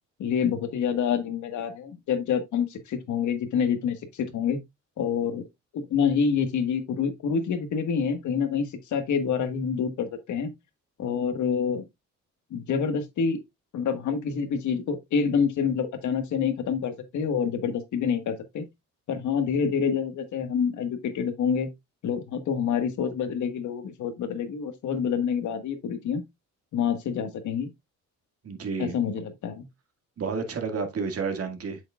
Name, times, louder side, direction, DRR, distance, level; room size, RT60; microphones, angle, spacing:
voice 1, 0.2-4.6 5.0-5.4 5.7-10.5 11.0-11.8 12.5-13.4 13.7-18.6 19.1-21.7 22.0-26.2 26.7-27.7 28.8-29.6, left 6 dB, 75° left, 1.6 m, -27 dB
voice 2, 28.4-29.1 30.2-31.8, right 5 dB, 50° right, 2.0 m, -31 dB
7.9 x 6.6 x 2.4 m
cardioid pair, 90°, 30 cm